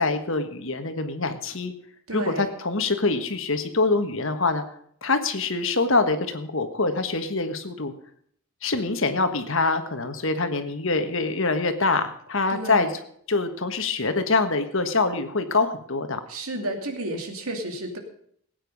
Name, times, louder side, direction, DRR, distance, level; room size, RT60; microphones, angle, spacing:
voice 1, 0.0-1.7 2.1-4.6 5.0-7.9 8.6-13.0 13.3-16.2, left 3 dB, 60° left, 8 dB, 1.5 m, -25 dB
voice 2, 2.1-2.5 12.5-12.9 16.3-18.0, right 1 dB, 80° right, 4 dB, 2.7 m, -31 dB
18.0 x 9.2 x 5.3 m, 0.63 s
head